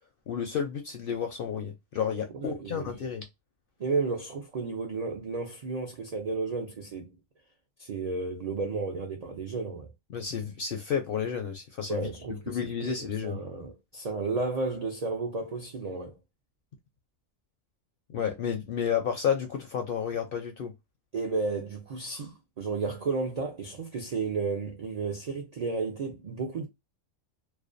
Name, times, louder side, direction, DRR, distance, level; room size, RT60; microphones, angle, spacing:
voice 1, 0.3-3.2 10.1-12.1 12.5-13.4 18.1-20.7, left 7 dB, 65° left, 0.6 m, -31 dB
voice 2, 2.3-2.9 3.8-7.1 7.8-9.9 11.9-16.2 21.1-26.7, right 4 dB, 75° right, 0.3 m, -33 dB
2.4 x 2.2 x 2.4 m
omnidirectional pair, 1.4 m